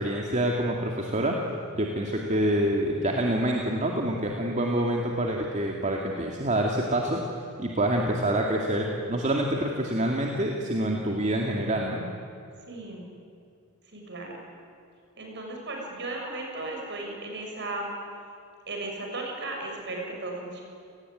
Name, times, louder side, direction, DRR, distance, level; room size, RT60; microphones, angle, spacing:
voice 1, 0.0-1.4 1.7-7.2 7.6-12.1, right 1 dB, 35° right, 0 dB, 2.3 m, -26 dB
voice 2, 12.7-13.1 13.9-14.4 15.2-17.9 18.7-20.6, right 2 dB, 55° right, 0 dB, 6.8 m, -35 dB
30.0 x 19.0 x 9.8 m, 2.4 s
head